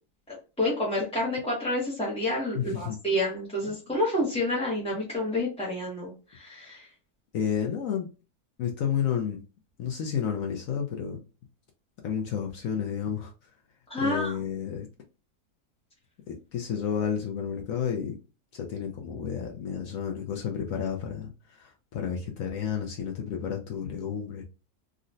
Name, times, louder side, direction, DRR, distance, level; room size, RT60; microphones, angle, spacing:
voice 1, 0.3-6.9 13.9-14.4, left 1 dB, 5° left, -5 dB, 0.5 m, -29 dB
voice 2, 2.5-3.0 3.6-3.8 7.3-8.1 8.6-9.4 9.8-11.2 12.0-13.3 14.0-14.9 16.3-18.2 18.5-24.4, left 8 dB, 65° left, 2 dB, 0.9 m, -31 dB
3.7 x 2.1 x 2.5 m, 0.32 s
omnidirectional pair, 1.7 m